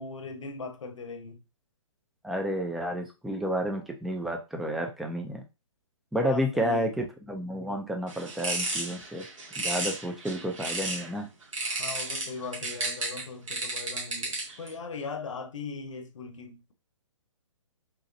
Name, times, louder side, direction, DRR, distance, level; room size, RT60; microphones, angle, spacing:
voice 1, 0.0-1.4 6.2-6.9 11.8-16.7, left 4 dB, 70° left, 0.8 m, -39 dB
voice 2, 2.2-5.4 6.1-9.3 9.6-11.3, equal, ahead, 0.3 m, -31 dB
sound 1, 8.1-11.1 11.5-14.7, right 2 dB, 75° right, 1.9 m, -33 dB
3.9 x 3.1 x 2.5 m
hypercardioid pair, 140°, 17 cm